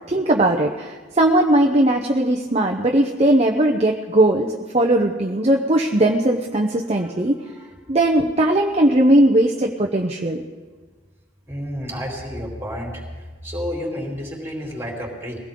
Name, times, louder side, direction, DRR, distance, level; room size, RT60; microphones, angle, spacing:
voice 1, 0.0-7.4 7.9-10.4, right 1 dB, 30° right, 2 dB, 0.9 m, -18 dB
voice 2, 11.5-13.0 13.4-15.4, equal, 15° right, -2 dB, 3.6 m, -30 dB
22.0 x 17.0 x 3.9 m, 1.4 s
head